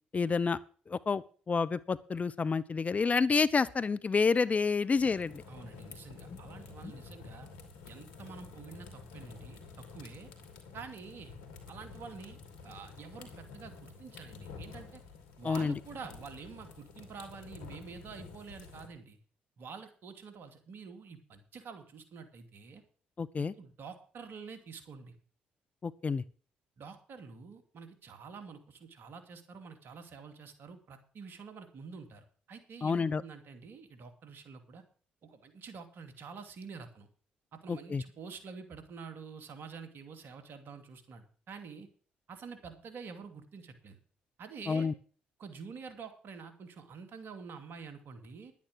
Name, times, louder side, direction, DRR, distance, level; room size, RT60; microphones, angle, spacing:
voice 1, 0.1-0.6 0.9-5.4 6.3-6.4 6.8-6.9 15.4-15.8 23.2-23.5 25.8-26.2 32.8-33.2 37.7-38.0 44.7-44.9, left 5 dB, 35° left, 17 dB, 0.7 m, -29 dB
sound 1, 5.0-18.9, left 4 dB, 80° left, 2.5 m, -50 dB
voice 2, 5.5-7.5 7.9-10.3 10.7-11.3 11.7-12.4 12.6-15.0 15.4-19.2 19.6-22.8 23.4-25.1 26.8-34.8 35.2-37.1 37.5-41.9 42.3-44.0 44.4-44.9 45.4-48.5, right 5 dB, 60° right, 8 dB, 2.7 m, -48 dB
11.0 x 9.4 x 6.3 m, 0.42 s
hypercardioid pair, 50°, 4 cm